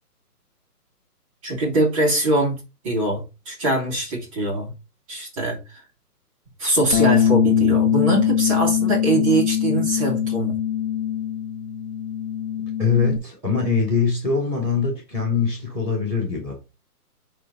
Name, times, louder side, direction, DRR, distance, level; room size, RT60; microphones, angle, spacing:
voice 1, 1.4-4.7 5.1-5.6 6.6-10.5, right 2 dB, 20° right, 2.3 m, -23 dB
Bass guitar, 6.9-13.2, left 9 dB, 35° left, 1.1 m, -22 dB
voice 2, 12.8-16.6, left 5 dB, 5° right, 0.8 m, -22 dB
9.9 x 3.4 x 4.0 m
hypercardioid pair, 165°, 47 cm